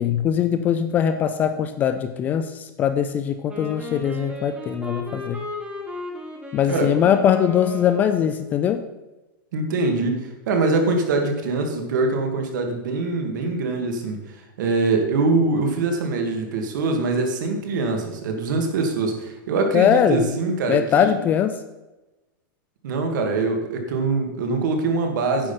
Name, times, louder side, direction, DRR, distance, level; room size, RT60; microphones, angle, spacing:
voice 1, 0.0-5.4 6.5-8.8 19.7-20.2 20.7-21.6, left 8 dB, 15° left, 10 dB, 0.3 m, -21 dB
Wind instrument woodwind instrument, 3.5-8.5, left 1 dB, 10° right, 1.4 m, -35 dB
voice 2, 9.5-14.2 14.6-21.2 22.8-25.5, right 3 dB, 60° right, 4 dB, 2.4 m, -23 dB
9.9 x 7.9 x 5.7 m, 1.1 s
supercardioid pair, 170°, 12 cm